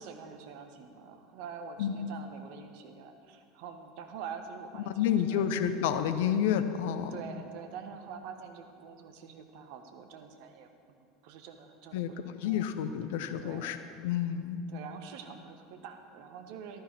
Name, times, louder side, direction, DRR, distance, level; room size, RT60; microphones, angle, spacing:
voice 1, 0.0-5.5 6.2-6.5 7.1-12.7 13.4-13.7 14.7-16.8, right 6 dB, 55° right, 6 dB, 1.3 m, -46 dB
voice 2, 4.9-7.2 11.9-12.1 12.4-13.8 14.0-14.7, left 9 dB, 60° left, 10 dB, 0.8 m, -29 dB
14.0 x 13.0 x 4.5 m, 2.4 s
figure-of-eight pair, 75°, 0 cm